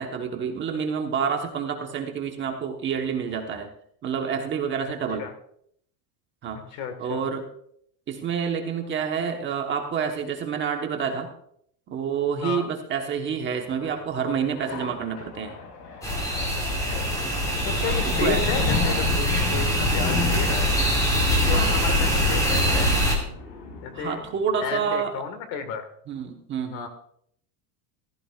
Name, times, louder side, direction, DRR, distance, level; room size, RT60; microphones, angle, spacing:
voice 1, 0.0-3.7 4.0-5.3 6.4-6.6 7.0-7.4 8.1-11.3 11.9-15.5 17.8-18.4 21.5-21.8 23.9-25.1 26.1-26.9, right 7 dB, 25° right, 4 dB, 1.2 m, -28 dB
voice 2, 6.7-7.2 12.4-12.7 16.8-17.2 17.7-20.8 21.3-23.0 23.8-24.2 24.6-25.9 26.7-26.9, left 6 dB, 60° left, 8 dB, 1.8 m, -32 dB
sound 1, 13.5-24.8, left 4 dB, 90° left, 5.4 m, -35 dB
sound 2, 16.0-23.2, equal, 10° left, 2.3 m, -23 dB
15.0 x 13.5 x 2.4 m, 0.67 s
cardioid pair, 165°, 45 cm